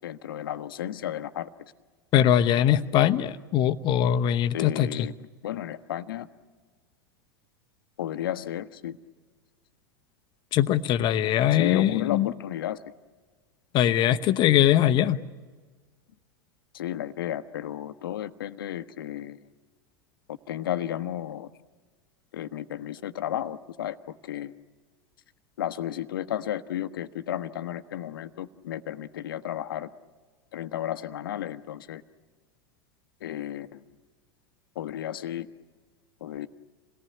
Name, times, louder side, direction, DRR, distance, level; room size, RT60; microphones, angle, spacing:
voice 1, 0.0-1.5 4.5-5.1 5.4-6.3 8.0-9.0 11.5-12.8 16.7-19.4 20.3-21.5 22.3-24.0 24.2-24.5 25.6-29.9 30.5-32.0 33.2-33.8 34.7-35.5 36.2-36.5, left 11 dB, 70° left, 1.1 m, -33 dB
voice 2, 2.1-5.1 10.5-12.3 13.7-15.2, left 11 dB, 40° left, 0.9 m, -22 dB
27.5 x 18.5 x 9.7 m
figure-of-eight pair, 85°, 12 cm